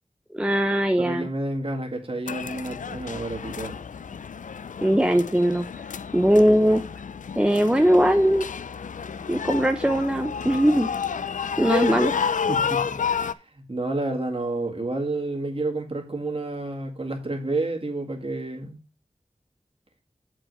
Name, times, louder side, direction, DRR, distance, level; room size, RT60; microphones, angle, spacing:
voice 1, 0.3-1.3 4.8-5.7 6.1-6.8 7.4-8.5 9.3-10.9 11.6-12.1, equal, 5° right, 7 dB, 0.6 m, -20 dB
voice 2, 1.0-3.8 12.5-13.0 13.5-18.8, right 2 dB, 45° right, 1 dB, 2.0 m, -30 dB
sound 1, 2.3-13.3, left 6 dB, 90° left, 0.4 m, -30 dB
7.4 x 5.0 x 5.3 m, 0.32 s
wide cardioid pair, 70°, 13 cm